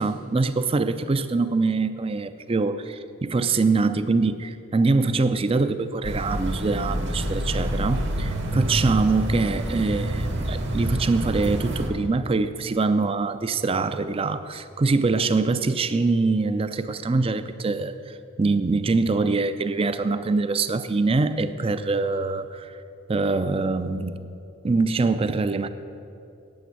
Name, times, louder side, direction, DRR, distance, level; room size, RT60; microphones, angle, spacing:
voice 1, 0.0-22.8 23.1-24.3 24.6-25.7, right 3 dB, 25° right, 12 dB, 0.4 m, -24 dB
sound 1, 6.0-11.9, right 1 dB, 55° right, 1.4 m, -27 dB
8.7 x 8.7 x 8.1 m, 2.7 s
head